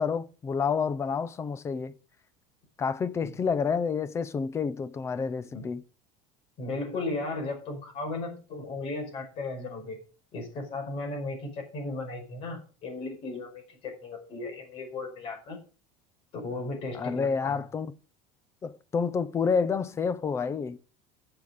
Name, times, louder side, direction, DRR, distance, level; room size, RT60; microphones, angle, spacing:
voice 1, 0.0-1.9 2.8-5.8 16.9-17.9 18.6-20.8, left 5 dB, 20° left, 0.7 m, -29 dB
voice 2, 6.6-10.0 10.3-15.6 16.3-17.7, left 2 dB, 40° left, 5.2 m, -36 dB
11.0 x 6.9 x 6.5 m
cardioid pair, 175°, 15 cm